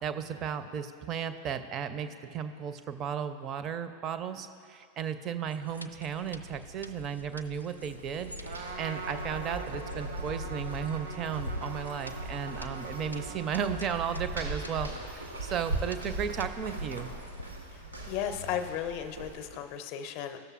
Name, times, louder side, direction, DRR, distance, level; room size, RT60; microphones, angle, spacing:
voice 1, 0.0-17.1, right 8 dB, 30° right, 10 dB, 0.4 m, -35 dB
sound 1, 5.4-17.6, left 1 dB, 90° left, 0.3 m, -45 dB
sound 2, 7.6-19.7, right 2 dB, 80° right, 1.4 m, -40 dB
Trumpet, 8.4-14.6, right 3 dB, 65° right, 0.7 m, -43 dB
voice 2, 17.7-20.4, left 9 dB, 45° left, 8 dB, 0.6 m, -35 dB
15.0 x 6.6 x 2.4 m, 2.3 s
figure-of-eight pair, 90°, 0 cm